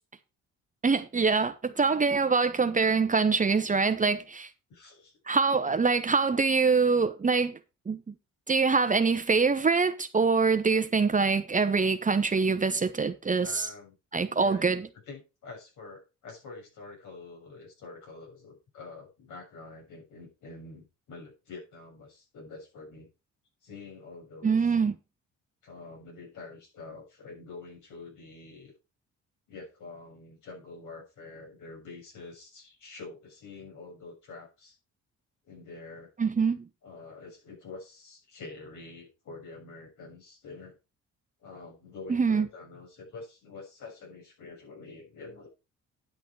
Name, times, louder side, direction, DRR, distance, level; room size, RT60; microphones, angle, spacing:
voice 1, 0.8-4.5 5.3-7.6 7.9-8.1 8.5-13.7 14.1-14.8 24.4-24.9 36.2-36.7 42.1-42.5, right 4 dB, 25° right, 0.9 m, -24 dB
voice 2, 4.7-5.1 13.4-14.0 14.4-14.7 15.1-23.1 23.6-24.7 25.6-28.7 29.5-34.8 35.5-36.1 36.8-40.8 41.4-45.5, left 3 dB, 75° left, 7.0 m, -46 dB
10.5 x 6.3 x 4.7 m
cardioid pair, 90°, 30 cm